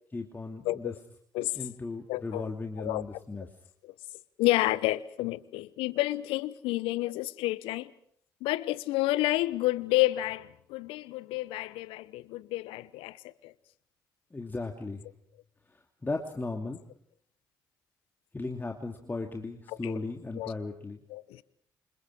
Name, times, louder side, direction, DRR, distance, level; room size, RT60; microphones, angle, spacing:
voice 1, 0.1-0.9 1.5-3.5 14.3-15.0 15.7-16.8 18.3-21.0, left 3 dB, 20° left, 2.6 m, -36 dB
voice 2, 2.1-2.5 2.8-3.0 3.8-3.9 4.4-7.9 8.4-13.2 13.4-13.5 19.8-19.9 20.4-20.5 21.1-21.4, left 18 dB, 70° left, 0.9 m, -30 dB
28.5 x 27.0 x 4.8 m
hypercardioid pair, 45°, 10 cm